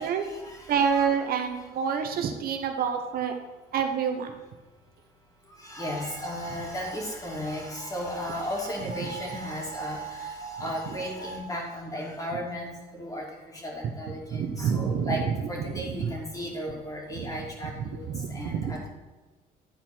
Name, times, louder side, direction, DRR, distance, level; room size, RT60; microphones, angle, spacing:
voice 1, 0.0-1.1 5.6-13.2 13.6-15.2 15.5-18.0 18.3-18.9, equal, 20° left, -1 dB, 2.8 m, -35 dB
voice 2, 0.7-3.3 3.7-4.3 14.3-15.1 16.0-16.1 17.1-17.2 18.1-18.7, right 7 dB, 60° right, 5 dB, 1.1 m, -27 dB
11.0 x 4.4 x 6.2 m, 1.3 s
cardioid pair, 110°, 17 cm